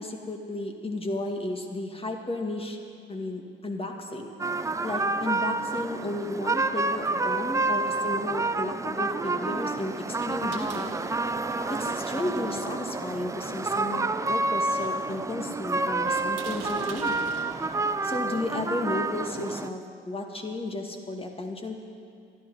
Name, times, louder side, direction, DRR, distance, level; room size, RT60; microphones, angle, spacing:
voice 1, 0.0-2.8 3.1-4.3 4.6-11.0 11.7-17.3 18.0-21.8, left 2 dB, 20° left, 3 dB, 2.2 m, -33 dB
sound 1, 4.4-19.7, right 3 dB, 10° right, 0.5 m, -29 dB
sound 2, 10.2-19.0, right 7 dB, 55° right, 1.7 m, -48 dB
22.5 x 13.5 x 4.2 m, 2.4 s
figure-of-eight pair, 60°, 29 cm